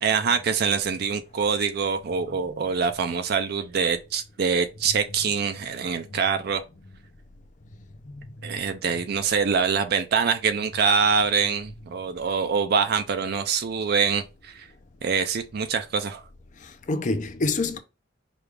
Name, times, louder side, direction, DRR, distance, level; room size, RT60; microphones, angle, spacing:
voice 1, 0.0-6.6 8.4-14.7 15.0-16.2, right 5 dB, 55° right, 0.4 m, -24 dB
voice 2, 16.6-17.8, left 3 dB, 45° left, 0.6 m, -27 dB
5.0 x 2.4 x 3.2 m
head